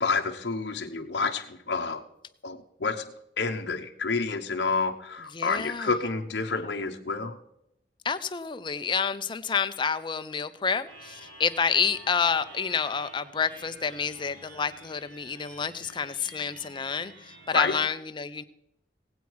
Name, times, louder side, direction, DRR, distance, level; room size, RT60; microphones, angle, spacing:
voice 1, 0.0-2.0 2.4-3.1 3.4-7.4 17.5-17.7, left 4 dB, 65° left, 3 dB, 0.8 m, -29 dB
voice 2, 5.3-5.9 8.0-17.1 17.5-18.4, left 6 dB, 25° left, 11 dB, 0.5 m, -29 dB
sound 1, 10.9-17.7, right 1 dB, 85° right, 2.7 m, -49 dB
18.5 x 8.3 x 4.6 m, 0.80 s
head